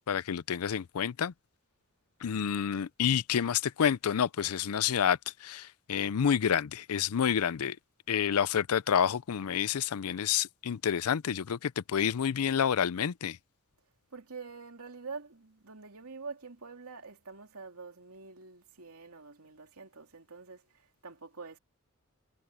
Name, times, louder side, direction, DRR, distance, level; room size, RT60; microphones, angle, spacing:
voice 1, 0.1-1.3 2.2-7.8 8.1-13.4, left 8 dB, 90° left, 0.5 m, -29 dB
voice 2, 14.1-21.6, right 4 dB, 85° right, 2.8 m, -46 dB
head